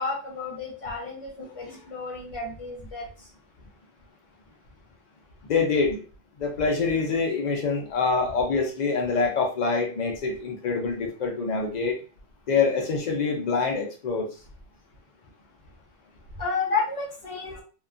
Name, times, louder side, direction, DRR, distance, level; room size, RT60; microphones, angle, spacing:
voice 1, 0.0-3.1 16.4-17.6, left 4 dB, 30° left, -3 dB, 0.8 m, -31 dB
voice 2, 5.5-6.0 6.4-12.0 12.5-14.3, left 4 dB, 85° left, 1 dB, 0.3 m, -25 dB
2.8 x 2.2 x 2.5 m, 0.37 s
omnidirectional pair, 1.4 m